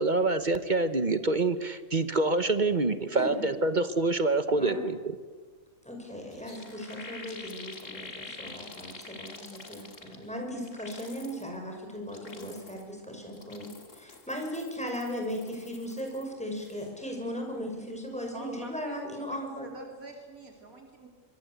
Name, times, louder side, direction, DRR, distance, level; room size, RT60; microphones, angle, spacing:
voice 1, 0.0-5.0, right 2 dB, 35° right, 11 dB, 1.2 m, -26 dB
voice 2, 5.8-19.7, equal, 5° left, 2 dB, 5.9 m, -37 dB
sound 1, 6.0-6.1 6.3-10.3 10.6-11.5 12.0-12.9 13.3-16.3 16.6-16.9, left 3 dB, 65° left, 3.0 m, -47 dB
voice 3, 18.3-21.1, right 1 dB, 90° right, 2 dB, 4.0 m, -45 dB
25.5 x 23.0 x 8.3 m, 1.4 s
omnidirectional pair, 1.5 m